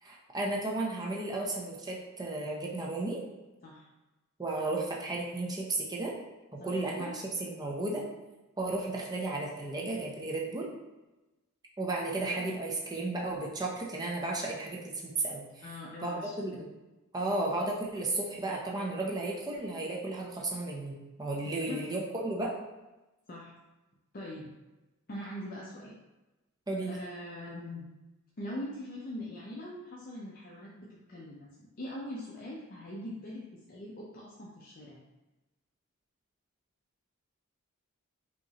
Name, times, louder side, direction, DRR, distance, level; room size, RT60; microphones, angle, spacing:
voice 1, 0.0-3.2 4.4-6.2 6.5-8.0 8.6-10.7 11.8-15.7 16.0-16.7 17.1-20.9 21.2-22.5 26.7-26.9, right 2 dB, 20° right, -2 dB, 0.5 m, -34 dB
voice 2, 6.6-7.1 15.6-16.7 21.4-21.8 23.3-23.5 24.1-24.5 25.1-25.9 26.9-27.9 28.4-31.5 31.8-35.0, left 1 dB, 40° left, -4 dB, 0.5 m, -42 dB
5.0 x 2.9 x 2.8 m, 1.1 s
head